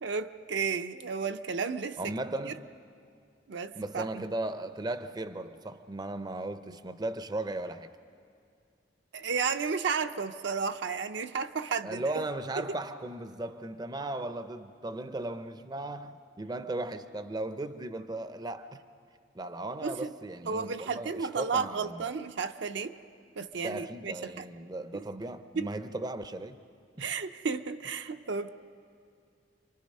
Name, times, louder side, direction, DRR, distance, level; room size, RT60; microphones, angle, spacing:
voice 1, 0.0-2.1 2.5-2.6 3.5-4.2 9.1-12.0 19.8-20.1 20.5-23.0 23.4-24.4 24.9-25.0 25.6-25.7 27.0-28.5, right 5 dB, 65° right, 0.6 m, -33 dB
voice 2, 2.0-2.7 3.8-7.9 11.8-18.8 19.3-22.0 23.6-26.6 27.0-27.1, right 2 dB, 20° right, 0.6 m, -37 dB
29.0 x 23.5 x 5.4 m
head